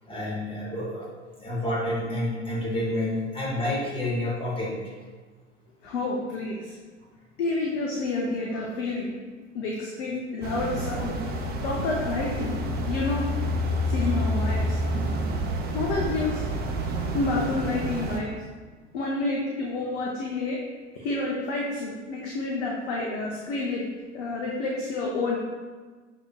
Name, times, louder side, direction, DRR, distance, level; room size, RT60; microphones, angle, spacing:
voice 1, 0.0-1.1 1.4-4.9, left 1 dB, 15° left, -4 dB, 0.9 m, -29 dB
voice 2, 5.8-6.8 7.4-9.1 9.5-11.2 11.6-12.6 12.9-13.3 13.8-14.8 15.7-16.4 17.1-18.3 18.9-20.6 20.9-23.8 24.1-25.4, left 3 dB, 60° left, -2 dB, 0.7 m, -29 dB
sound 1, 10.4-18.2, equal, 25° right, 0.5 m, -28 dB
6.5 x 2.7 x 2.3 m, 1.5 s
figure-of-eight pair, 80°, 36 cm